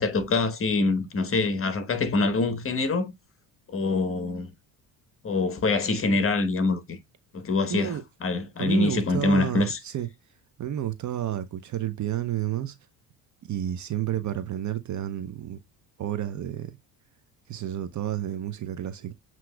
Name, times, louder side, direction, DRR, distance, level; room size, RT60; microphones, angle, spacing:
voice 1, 0.0-3.1 3.7-4.5 5.2-7.0 7.3-9.8, left 3 dB, 30° left, 1.1 m, -25 dB
voice 2, 7.7-8.0 8.6-10.1 10.6-12.8 13.5-15.6 16.0-16.7 17.5-19.1, right 11 dB, 40° right, 0.6 m, -30 dB
7.6 x 3.0 x 2.2 m
supercardioid pair, 90°, 43 cm